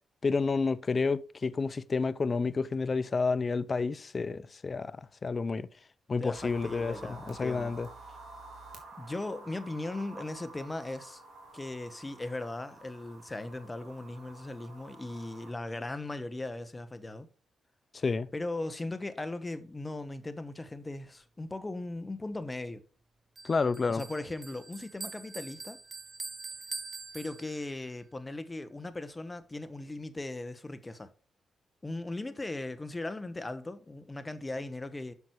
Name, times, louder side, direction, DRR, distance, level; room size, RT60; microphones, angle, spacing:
voice 1, 0.2-5.7 6.1-7.9 18.0-18.3 23.4-24.0, left 4 dB, 45° left, 0.6 m, -30 dB
voice 2, 6.2-7.8 9.0-11.2 11.5-17.3 18.3-22.8 23.9-25.8 27.1-31.1 31.8-35.1, left 2 dB, 25° left, 1.3 m, -38 dB
sound 1, 6.3-15.5, right 2 dB, 70° right, 2.9 m, -50 dB
Bell, 23.4-27.9, right 4 dB, 40° right, 0.8 m, -44 dB
8.4 x 6.1 x 4.7 m
supercardioid pair, 50°, 0 cm